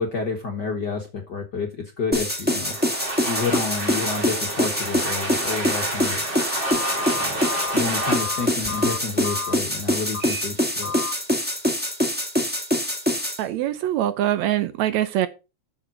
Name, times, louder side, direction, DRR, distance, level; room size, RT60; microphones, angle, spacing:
voice 1, 0.0-2.8 3.3-6.2 7.1-7.5 7.7-10.9, left 4 dB, 50° left, 1.3 m, -29 dB
sound 1, 2.1-13.4, left 1 dB, 5° right, 1.2 m, -24 dB
sound 2, 2.5-10.0, right 2 dB, 25° right, 2.3 m, -31 dB
Telephone, 6.6-9.5 10.1-10.4 10.8-11.1, left 3 dB, 20° left, 0.8 m, -31 dB
voice 2, 13.4-15.3, right 12 dB, 75° right, 1.9 m, -23 dB
7.3 x 6.7 x 6.2 m
omnidirectional pair, 3.5 m